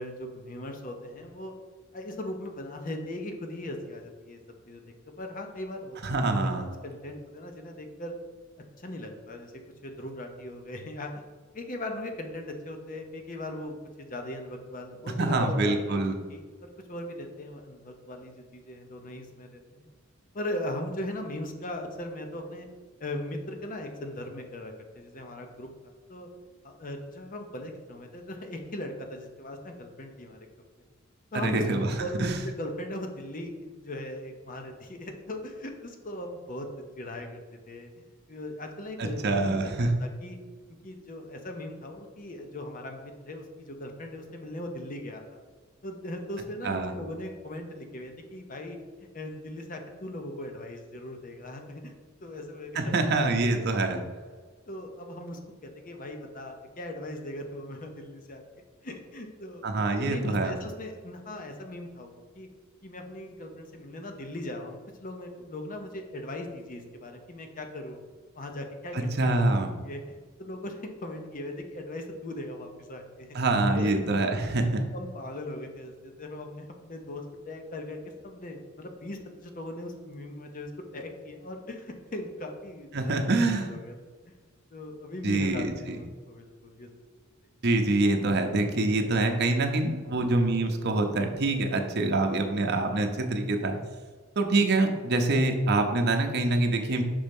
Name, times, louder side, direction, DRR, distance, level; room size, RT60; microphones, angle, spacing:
voice 1, 0.0-1.5 1.9-4.4 4.7-4.8 5.2-6.1 6.8-8.1 8.8-9.5 9.8-11.1 11.5-16.0 16.3-19.9 20.3-22.7 23.0-25.7 26.1-26.3 26.6-30.4 31.3-36.7 37.0-37.4 37.7-37.9 38.3-40.4 40.8-45.4 45.8-48.8 49.1-51.9 52.2-53.0 54.7-58.4 58.8-59.7 59.9-62.1 62.3-62.5 62.8-68.0 68.4-69.6 69.8-73.4 73.7-74.3 74.9-78.0 78.2-83.9 84.7-86.9, left 1 dB, 40° left, 4 dB, 0.8 m, -39 dB
voice 2, 6.0-6.7 15.2-16.2 31.3-32.4 39.0-39.9 46.6-46.9 52.7-54.0 59.6-60.6 68.9-69.7 73.3-74.8 82.9-83.8 85.2-86.0 87.6-93.8 94.4-97.0, right 2 dB, 55° right, 4 dB, 0.7 m, -25 dB
5.3 x 4.3 x 5.3 m, 1.4 s
head